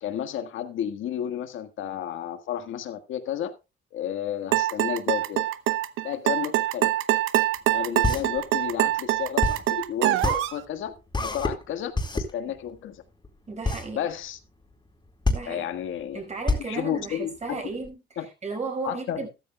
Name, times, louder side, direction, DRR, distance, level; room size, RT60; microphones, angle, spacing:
voice 1, 0.0-3.5 3.9-5.5 6.0-6.9 7.7-10.9 11.2-13.0 13.9-14.4 15.4-16.2 16.6-17.6 18.2-18.3 18.8-19.3, left 10 dB, 80° left, 1.7 m, -32 dB
sound 1, 4.5-10.6, right 14 dB, 90° right, 0.8 m, -24 dB
sound 2, 7.5-17.9, left 2 dB, 20° left, 4.1 m, -29 dB
voice 2, 13.5-14.0 15.3-15.7 16.1-19.3, right 3 dB, 35° right, 5.1 m, -34 dB
13.5 x 13.5 x 2.3 m
cardioid pair, 90°, 20 cm